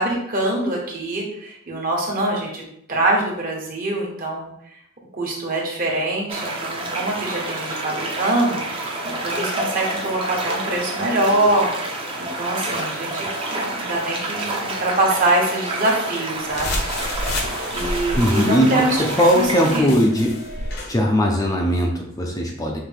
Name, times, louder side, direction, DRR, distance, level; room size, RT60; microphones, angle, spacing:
voice 1, 0.0-2.6 2.9-4.5 5.2-11.7 12.2-17.2 17.7-19.0 19.3-19.5 19.7-19.9, right 2 dB, 45° right, -1 dB, 1.1 m, -24 dB
sound 1, 6.3-19.8, right 2 dB, 25° right, 0.7 m, -28 dB
sound 2, 16.5-20.9, left 1 dB, 55° left, 0.8 m, -30 dB
voice 2, 18.2-20.3 20.9-22.8, equal, 15° left, 0 dB, 0.5 m, -19 dB
5.7 x 2.7 x 3.4 m, 0.74 s
head